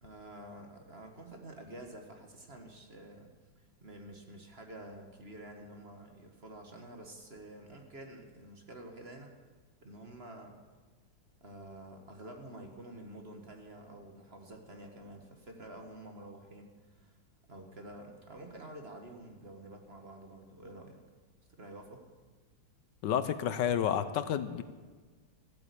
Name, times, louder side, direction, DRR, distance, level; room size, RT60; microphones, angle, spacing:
voice 1, 0.0-3.3 3.6-9.3 9.8-10.6 11.4-17.2 17.5-21.0 21.5-22.0, right 1 dB, 35° right, 3 dB, 1.5 m, -49 dB
voice 2, 23.0-24.6, left 9 dB, 75° left, 12 dB, 1.3 m, -30 dB
14.5 x 8.6 x 8.3 m, 1.4 s
omnidirectional pair, 2.0 m